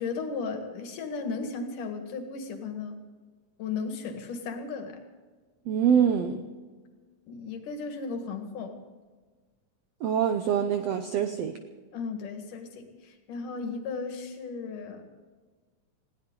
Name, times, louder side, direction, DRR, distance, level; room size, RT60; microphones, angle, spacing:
voice 1, 0.0-3.0 3.6-5.0 7.3-8.8 11.9-15.0, left 4 dB, 65° left, 5 dB, 3.3 m, -35 dB
voice 2, 5.7-6.4 10.0-11.6, right 8 dB, 80° right, 7 dB, 1.4 m, -25 dB
21.0 x 16.5 x 3.9 m, 1.4 s
omnidirectional pair, 4.0 m